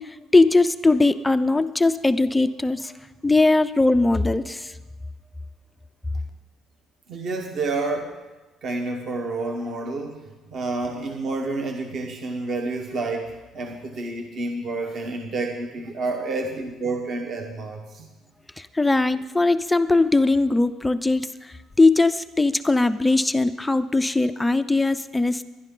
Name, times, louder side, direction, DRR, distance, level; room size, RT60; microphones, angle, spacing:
voice 1, 0.0-2.9 3.2-4.7 18.6-25.4, left 2 dB, 5° left, 11 dB, 0.3 m, -20 dB
voice 2, 7.1-8.2 8.6-18.1, right 3 dB, 40° right, 3 dB, 1.1 m, -29 dB
21.0 x 11.0 x 3.8 m, 1.1 s
cardioid pair, 180°, 0 cm